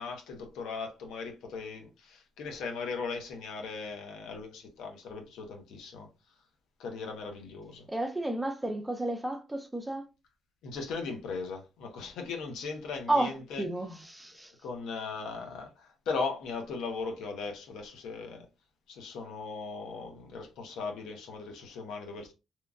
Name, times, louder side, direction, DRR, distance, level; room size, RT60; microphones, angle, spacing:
voice 1, 0.0-6.1 6.8-7.8 10.6-13.6 14.6-18.5 18.9-22.3, left 4 dB, 85° left, 0.7 m, -38 dB
voice 2, 7.9-10.1 13.1-14.5, right 1 dB, 10° right, 0.5 m, -32 dB
2.9 x 2.4 x 2.4 m
cardioid pair, 90°, 0 cm